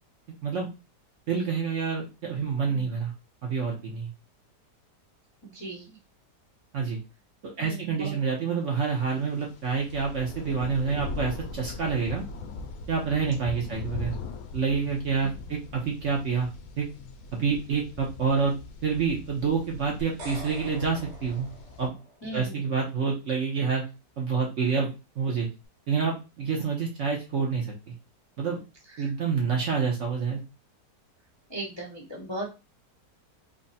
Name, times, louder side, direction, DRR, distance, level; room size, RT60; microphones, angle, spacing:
voice 1, 1.3-3.1 3.4-4.1 6.7-7.0 7.4-12.2 12.9-14.1 14.5-16.5 16.8-16.9 17.3-18.5 18.8-21.5 21.8-21.9 22.3-23.8 24.2-25.5 25.9-27.9 28.4-28.6 29.0-30.4, right 5 dB, 55° right, -1 dB, 0.9 m, -28 dB
voice 2, 5.4-6.0 7.6-8.2 22.2-22.7 28.9-29.1 31.5-32.5, right 2 dB, 30° left, -5 dB, 0.5 m, -38 dB
sound 1, 9.2-21.9, left 4 dB, 70° left, 1.0 m, -40 dB
sound 2, 20.0-22.3, right 1 dB, 75° right, 1.6 m, -44 dB
3.5 x 2.0 x 4.0 m, 0.28 s
omnidirectional pair, 1.8 m